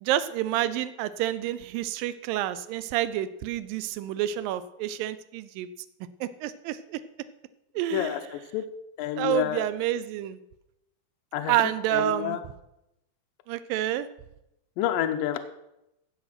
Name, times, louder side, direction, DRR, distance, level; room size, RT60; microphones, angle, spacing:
voice 1, 0.0-5.7 6.2-7.0 7.8-8.2 9.2-10.4 11.5-12.4 13.5-14.1, right 12 dB, 85° right, 14 dB, 2.0 m, -28 dB
voice 2, 7.9-8.6 9.0-9.6 11.3-11.6 11.9-12.4 14.8-15.4, left 11 dB, 75° left, 7 dB, 2.2 m, -29 dB
15.0 x 7.9 x 5.9 m, 0.86 s
omnidirectional pair, 4.6 m